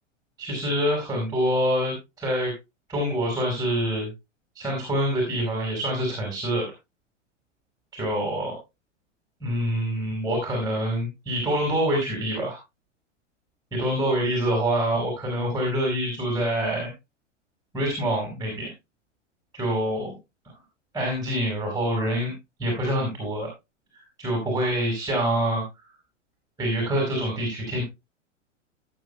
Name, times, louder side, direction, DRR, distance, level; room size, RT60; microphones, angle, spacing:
voice 1, 0.4-2.5 2.9-4.1 4.6-6.7 7.9-8.5 9.4-12.6 13.7-16.9 17.7-18.7 19.5-20.1 20.4-20.5 20.9-22.3 22.6-23.5 23.9-25.6 26.6-27.8, equal, 10° right, -1 dB, 5.2 m, -26 dB
18.0 x 8.7 x 2.2 m, 0.24 s
figure-of-eight pair, 105°, 37 cm